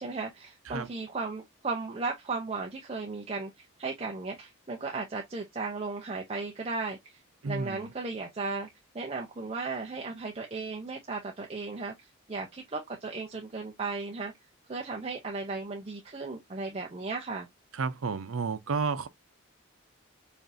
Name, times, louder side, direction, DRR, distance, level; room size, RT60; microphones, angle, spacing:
voice 1, 0.0-8.7 8.9-14.3 14.7-17.5, right 3 dB, 30° right, 0.5 m, -36 dB
voice 2, 7.4-7.9 17.7-19.1, right 4 dB, 80° right, 0.6 m, -31 dB
5.1 x 2.6 x 2.6 m
head